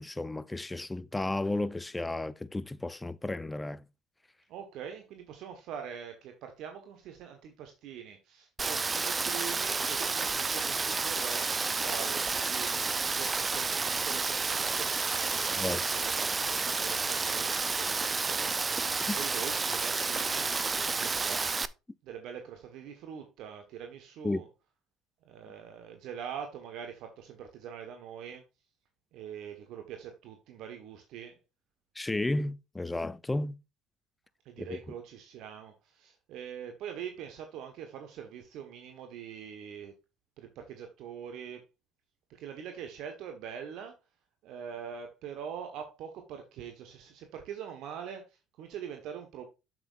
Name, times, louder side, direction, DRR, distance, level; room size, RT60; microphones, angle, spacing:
voice 1, 0.0-3.9 15.6-15.8 19.1-19.2 24.2-24.4 32.0-33.6 34.6-34.8, left 2 dB, 15° left, 0.6 m, -33 dB
voice 2, 4.5-12.9 13.2-18.6 18.8-20.5 20.8-21.5 22.0-24.5 25.2-28.4 29.1-31.4 34.4-39.9 40.4-41.6 42.3-44.0 44.4-49.5, right 8 dB, 65° right, 1.4 m, -43 dB
Rain, 8.6-21.7, right 4 dB, 25° right, 0.6 m, -30 dB
7.8 x 7.6 x 2.5 m
supercardioid pair, 75°, 0 cm